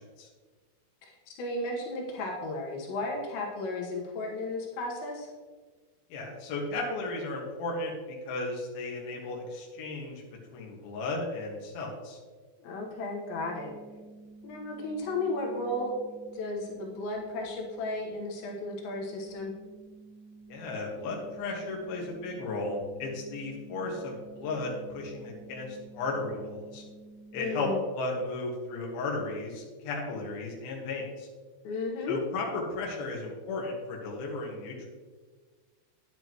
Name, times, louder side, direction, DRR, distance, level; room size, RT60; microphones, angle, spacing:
voice 1, 1.3-5.3 12.6-13.7 14.4-16.0 16.3-19.5 27.4-27.8 31.6-32.2, left 2 dB, 90° left, -1 dB, 3.6 m, -34 dB
voice 2, 6.1-10.2 10.5-12.2 20.5-26.8 27.3-31.3 32.1-34.9, left 2 dB, 65° left, -1 dB, 3.3 m, -35 dB
sound 1, 12.9-27.6, right 3 dB, 25° right, 2.8 m, -51 dB
10.0 x 9.7 x 3.1 m, 1.4 s
omnidirectional pair, 5.0 m